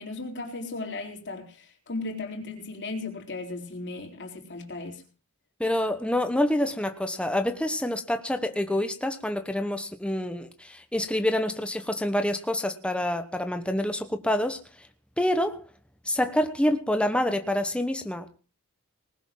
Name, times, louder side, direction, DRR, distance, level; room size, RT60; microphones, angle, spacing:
voice 1, 0.0-5.0, left 3 dB, 55° left, 4 dB, 4.0 m, -36 dB
voice 2, 5.6-14.6 15.2-15.6 16.0-18.4, left 1 dB, 5° left, 7 dB, 1.1 m, -27 dB
20.0 x 7.0 x 7.5 m, 0.37 s
head